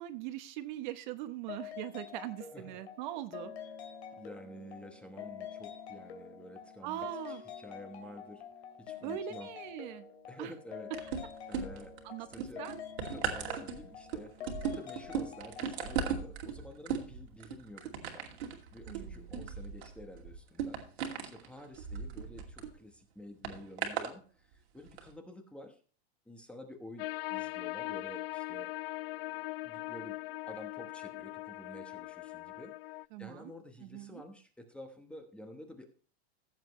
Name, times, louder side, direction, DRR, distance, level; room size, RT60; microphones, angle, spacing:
voice 1, 0.0-3.5 6.8-7.4 9.0-10.1 10.4-10.5 12.0-12.3 12.6-12.7 18.9-19.2 33.1-33.5 33.8-34.2, right 13 dB, 45° right, 10 dB, 1.0 m, -41 dB
sound 1, 1.5-16.3, left 8 dB, 85° left, 2.5 m, -47 dB
voice 2, 4.2-8.4 8.8-9.5 10.3-10.9 11.5-12.7 13.1-18.3 18.7-20.8 21.2-25.8 26.3-28.7 29.6-30.1 30.4-32.7 33.2-35.9, left 1 dB, 5° left, 5 dB, 1.0 m, -50 dB
sound 2, 10.9-12.0 12.3-22.7 23.4-24.1 24.9-25.0, right 7 dB, 85° right, 2.5 m, -37 dB
sound 3, 27.0-33.1, left 19 dB, 70° left, 0.5 m, -40 dB
15.5 x 7.6 x 3.1 m, 0.39 s
supercardioid pair, 160°, 32 cm